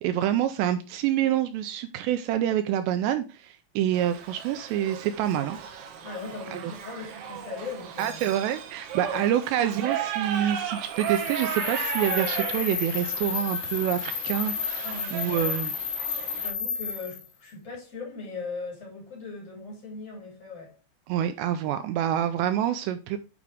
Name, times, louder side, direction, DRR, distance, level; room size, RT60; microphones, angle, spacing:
voice 1, 0.0-5.6 6.5-6.7 8.0-15.7 21.1-23.2, right 11 dB, 85° right, 2.5 m, -27 dB
Shout / Livestock farm animals working animals, 3.9-16.5, right 8 dB, 70° right, 2.9 m, -35 dB
voice 2, 6.0-8.3 9.0-9.4 14.8-15.6 16.3-20.8, left 4 dB, 35° left, 3.6 m, -39 dB
sound 1, 11.0-17.3, left 7 dB, 75° left, 3.0 m, -32 dB
9.3 x 4.8 x 3.5 m
omnidirectional pair, 5.5 m